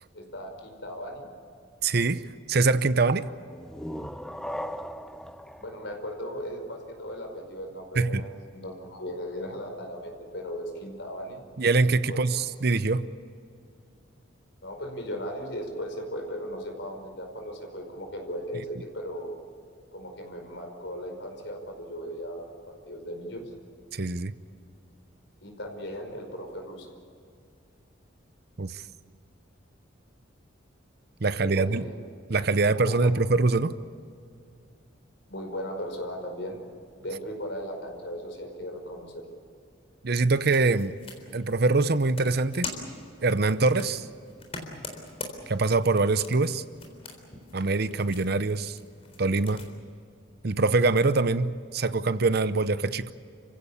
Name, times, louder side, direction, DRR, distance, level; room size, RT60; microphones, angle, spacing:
voice 1, 0.1-1.3 5.6-11.4 12.1-12.3 14.6-19.4 19.9-23.4 25.4-26.9 31.4-31.9 32.8-33.1 35.3-36.6 37.0-39.2, equal, 70° left, 3 dB, 5.2 m, -37 dB
voice 2, 1.8-2.2 2.5-3.3 8.0-8.2 11.6-13.1 23.9-24.3 28.6-28.8 31.2-31.8 32.3-33.7 40.0-40.9 41.3-42.7 43.2-44.0 45.5-46.6 47.5-48.8 49.2-49.6 50.4-53.1, right 3 dB, 55° right, 14 dB, 0.8 m, -24 dB
sound 1, 3.4-7.0, equal, 5° left, 0.6 m, -39 dB
sound 2, 40.1-49.7, left 3 dB, 30° left, 3.8 m, -43 dB
29.0 x 16.0 x 8.6 m, 2.4 s
head